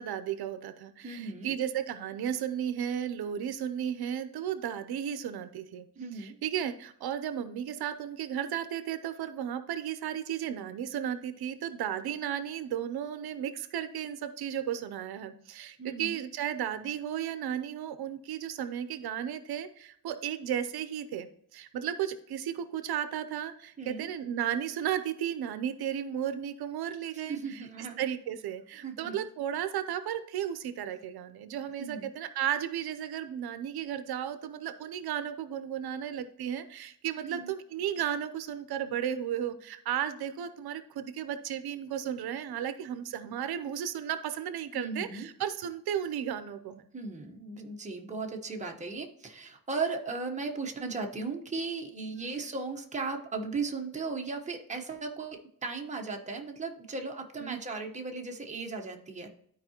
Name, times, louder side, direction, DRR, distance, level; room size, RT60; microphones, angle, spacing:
voice 1, 0.0-5.9 6.1-46.9 52.1-52.4 57.4-57.6, right 9 dB, 85° right, 11 dB, 0.7 m, -34 dB
voice 2, 1.0-1.5 6.0-6.3 15.8-16.2 23.8-24.1 27.3-28.0 28.8-29.2 31.8-32.1 37.2-37.5 44.7-45.3 46.9-59.4, right 4 dB, 20° right, 2 dB, 1.1 m, -36 dB
12.5 x 4.8 x 2.9 m, 0.67 s
wide cardioid pair, 155°, 37 cm